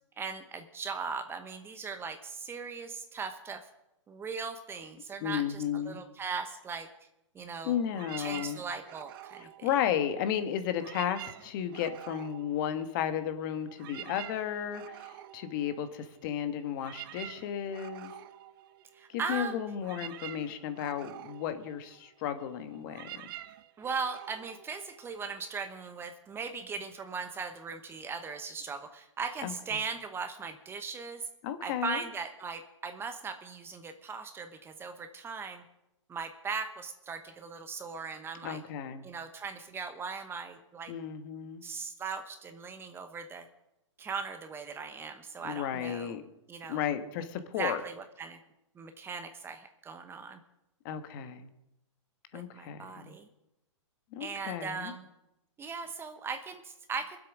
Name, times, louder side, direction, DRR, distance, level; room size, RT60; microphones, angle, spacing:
voice 1, 0.2-3.6 4.1-6.9 7.3-7.7 8.2-9.5 18.9-19.6 23.8-31.2 31.6-35.6 36.1-38.6 39.0-40.9 41.6-43.5 44.0-46.2 46.5-46.8 47.6-48.4 48.8-50.4 52.3-53.3 54.2-55.0 55.6-57.2, right 5 dB, 15° right, 8 dB, 1.0 m, -39 dB
voice 2, 5.2-6.0 7.6-8.6 9.4-18.1 19.1-23.2 29.4-29.5 31.4-32.0 38.4-39.0 40.9-41.6 45.4-46.2 46.7-47.8 50.8-51.5 52.3-53.1 54.1-54.9, left 9 dB, 40° left, 9 dB, 1.4 m, -34 dB
sound 1, 7.9-10.3 10.7-13.2 13.5-25.5, right 13 dB, 45° right, 0.8 m, -48 dB
22.0 x 7.9 x 6.2 m, 0.90 s
hypercardioid pair, 135°, 16 cm